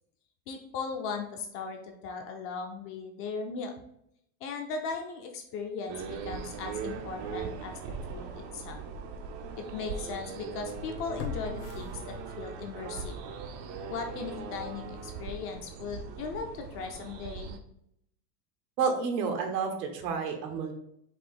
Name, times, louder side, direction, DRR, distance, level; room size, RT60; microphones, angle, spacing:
voice 1, 0.5-3.7 4.4-7.8 8.1-8.8 9.7-13.1 13.9-17.6, left 5 dB, 30° left, 3 dB, 0.5 m, -38 dB
sound 1, 5.9-17.6, right 5 dB, 45° right, 0.6 m, -40 dB
sound 2, 7.9-8.0 8.6-8.7 11.2-12.6 13.0-13.1, left 8 dB, 50° left, 0.9 m, -40 dB
voice 2, 18.8-20.7, right 5 dB, 90° right, 3 dB, 1.4 m, -30 dB
4.9 x 2.8 x 3.8 m, 0.74 s
supercardioid pair, 150°, 48 cm